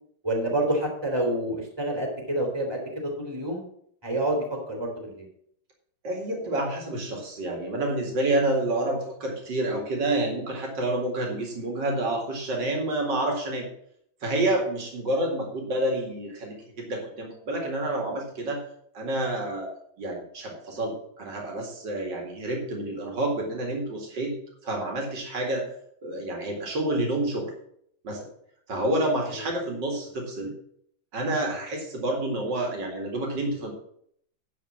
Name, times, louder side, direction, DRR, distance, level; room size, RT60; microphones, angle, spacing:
voice 1, 0.2-3.6 4.0-5.3, right 1 dB, 15° right, 1 dB, 2.8 m, -28 dB
voice 2, 6.0-13.7 14.2-18.6 18.9-19.7 20.0-24.4 24.6-25.7 26.0-27.5 28.0-28.3 28.7-30.5 31.1-33.7, right 1 dB, 70° right, 1 dB, 2.9 m, -28 dB
11.0 x 4.7 x 7.2 m, 0.67 s
omnidirectional pair, 2.0 m